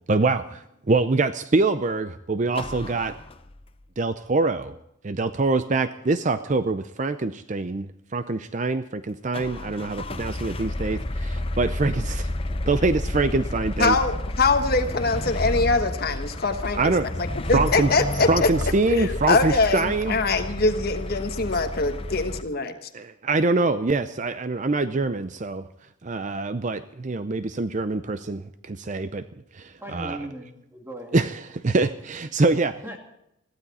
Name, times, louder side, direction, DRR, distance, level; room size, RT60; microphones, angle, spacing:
voice 1, 0.1-3.1 4.0-4.8 5.0-7.9 8.1-12.3 12.6-14.0 16.7-17.1 17.5-17.9 18.3-20.2 22.9-25.7 26.0-29.2 29.5-30.2 31.1-32.8, right 3 dB, 35° right, 12 dB, 0.5 m, -24 dB
sound 1, 2.5-3.8 9.3-22.4, left 1 dB, 25° left, 0.7 m, -31 dB
voice 2, 13.8-16.9 17.2-18.5 18.9-22.7, left 3 dB, 45° left, 7 dB, 1.2 m, -23 dB
voice 3, 29.8-31.3 32.8-33.0, equal, 10° right, 2 dB, 2.4 m, -38 dB
21.5 x 15.0 x 4.2 m, 0.81 s
head